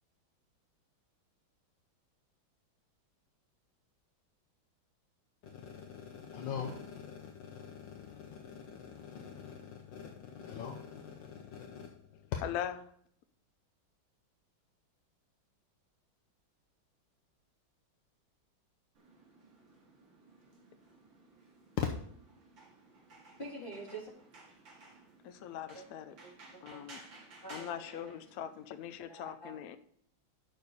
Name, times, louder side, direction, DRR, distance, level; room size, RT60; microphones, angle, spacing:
voice 1, 5.4-12.4 21.8-21.9, left 8 dB, 70° left, 1.5 m, -42 dB
voice 2, 12.4-12.8 25.2-26.1 26.6-27.0 27.5-29.8, left 10 dB, 85° left, 0.8 m, -41 dB
sound 1, 18.9-29.0, right 3 dB, 70° right, 2.9 m, -57 dB
voice 3, 23.4-24.1 25.7-25.8 26.2-26.8 27.4-28.1 29.1-29.5, right 2 dB, 25° left, 3.4 m, -47 dB
9.9 x 6.6 x 4.1 m
omnidirectional pair, 2.2 m